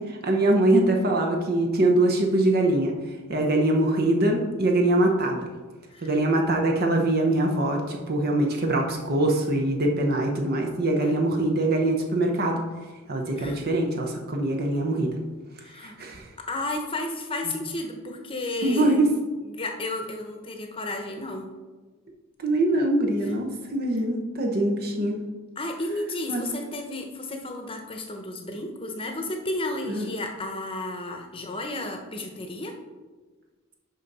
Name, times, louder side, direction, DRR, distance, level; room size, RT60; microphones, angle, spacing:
voice 1, 0.1-2.9 3.3-5.5 6.0-12.6 13.1-15.2 15.8-16.2 18.6-19.1 22.4-25.2 26.3-26.4 29.9-30.1, right 1 dB, 45° right, 1 dB, 0.8 m, -23 dB
voice 2, 15.6-16.0 16.4-19.0 19.4-21.5 23.2-23.3 25.6-32.8, left 2 dB, 25° left, 3 dB, 0.9 m, -33 dB
6.3 x 5.4 x 5.4 m, 1.3 s
head